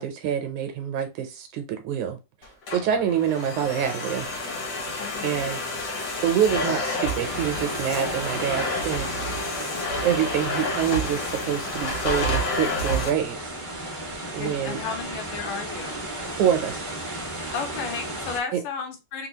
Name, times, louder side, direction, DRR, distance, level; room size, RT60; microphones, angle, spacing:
voice 1, 0.0-2.2 2.7-4.3 5.2-5.6 6.2-9.1 10.0-13.5 13.9-14.0 14.3-14.8 16.3-16.9 18.5-18.6, right 9 dB, 75° right, 1.9 m, -26 dB
Domestic sounds home sounds, 2.4-13.1, left 1 dB, 65° left, 1.0 m, -29 dB
voice 2, 5.0-5.5 10.4-10.5 14.4-16.1 17.5-19.3, left 6 dB, 80° left, 2.5 m, -33 dB
sound 1, 7.2-18.4, right 1 dB, 40° right, 0.7 m, -35 dB
5.9 x 2.3 x 2.8 m
omnidirectional pair, 3.7 m